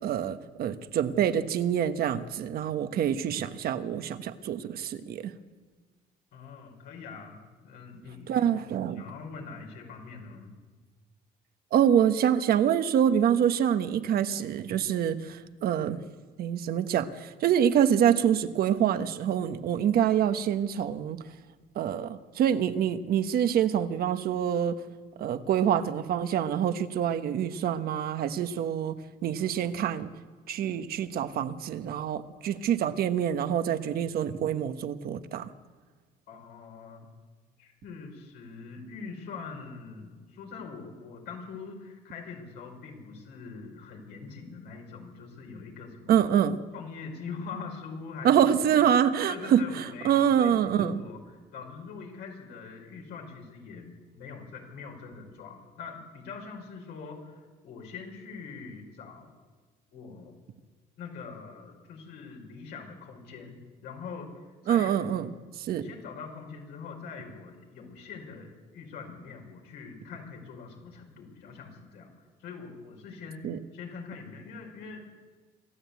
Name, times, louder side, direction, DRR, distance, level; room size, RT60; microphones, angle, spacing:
voice 1, 0.0-5.3 8.3-9.0 11.7-16.0 16.4-21.2 21.7-24.8 25.2-29.0 29.2-30.1 30.5-35.5 46.1-46.6 48.2-51.0 64.7-65.3 65.6-65.9 73.4-73.6, right 9 dB, 65° right, 1.2 m, -26 dB
voice 2, 6.3-10.5 36.3-37.1 37.6-46.2 46.7-48.5 48.7-48.8 49.3-51.2 51.5-59.3 59.9-60.4 61.0-64.9 65.8-75.0, left 5 dB, 85° left, 5.2 m, -43 dB
26.0 x 13.0 x 8.3 m
cardioid pair, 110°, 17 cm